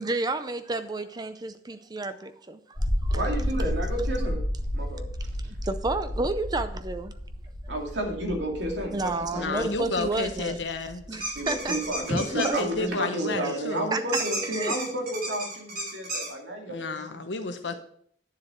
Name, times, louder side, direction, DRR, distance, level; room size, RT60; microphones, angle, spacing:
voice 1, 0.0-3.2 5.4-7.1 8.9-10.5 11.1-12.6 13.4-14.0 14.4-14.7, right 2 dB, 20° right, 11 dB, 0.5 m, -31 dB
sound 1, 2.8-12.9, equal, 15° left, 2.1 m, -32 dB
voice 2, 3.1-4.4 4.7-5.0 7.7-9.6 11.4-17.0, right 1 dB, 75° right, 1 dB, 2.3 m, -31 dB
voice 3, 9.3-11.2 12.0-13.9 16.6-17.7, left 3 dB, 70° left, 8 dB, 1.0 m, -31 dB
sound 2, 11.2-12.6 14.1-16.3, right 2 dB, 55° right, 4.7 m, -32 dB
9.8 x 7.4 x 4.4 m, 0.62 s
head